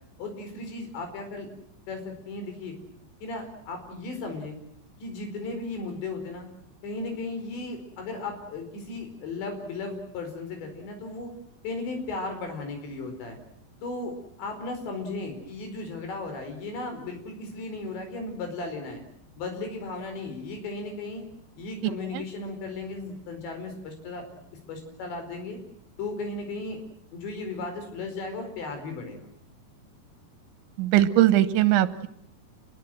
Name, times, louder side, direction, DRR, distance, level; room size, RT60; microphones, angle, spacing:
voice 1, 0.2-1.5 1.9-2.8 3.2-4.6 5.0-6.5 6.8-11.3 11.6-13.4 13.8-19.0 19.4-21.2 21.6-24.2 24.7-25.6 26.0-26.8 27.1-29.3, left 3 dB, 75° left, 5 dB, 7.1 m, -35 dB
voice 2, 30.8-32.1, right 13 dB, 85° right, 13 dB, 3.5 m, -20 dB
28.5 x 21.5 x 7.8 m, 0.70 s
omnidirectional pair, 5.2 m